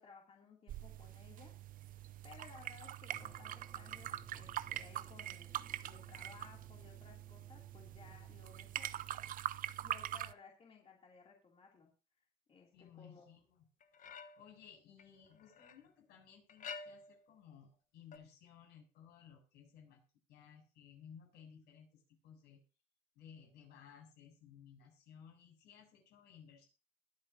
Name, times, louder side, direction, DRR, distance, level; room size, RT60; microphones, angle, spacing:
voice 1, 0.0-8.9 9.8-11.9 12.5-13.3, left 5 dB, 35° left, -1 dB, 2.9 m, -60 dB
sound 1, 0.7-10.3, right 12 dB, 55° right, 0.5 m, -44 dB
sound 2, 3.1-9.9, equal, 10° right, 3.4 m, -63 dB
voice 2, 12.7-13.7 14.4-20.0 20.3-22.6 23.1-26.7, left 8 dB, 80° left, 0 dB, 7.7 m, -59 dB
sound 3, 13.8-14.6 15.0-15.8 16.5-17.3 18.1-18.2, left 5 dB, 50° left, 1.1 m, -50 dB
21.5 x 8.3 x 2.7 m, 0.34 s
cardioid pair, 110°, 17 cm